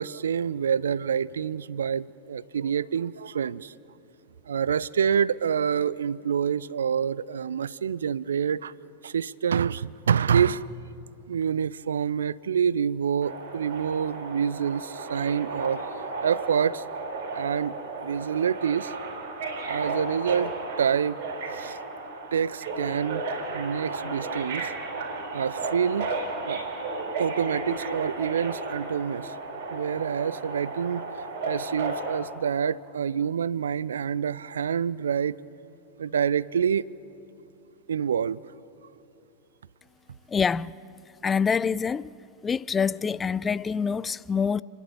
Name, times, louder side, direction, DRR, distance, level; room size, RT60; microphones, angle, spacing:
voice 1, 0.0-3.7 4.5-8.7 9.0-10.7 11.3-15.8 16.2-16.8 17.3-18.9 19.7-20.5 20.8-21.2 21.5-21.8 22.3-23.2 23.5-24.7 25.3-26.1 26.5-26.6 27.2-29.4 29.7-35.4 36.0-36.9 37.9-38.4, right 7 dB, 65° right, 0.4 m, -27 dB
Subway metro underground, 13.2-32.2, right 3 dB, 50° right, 4.1 m, -34 dB
voice 2, 40.3-40.7 41.2-42.1 42.4-44.6, left 6 dB, 20° left, 0.4 m, -26 dB
29.5 x 10.5 x 8.8 m
figure-of-eight pair, 90°, 0 cm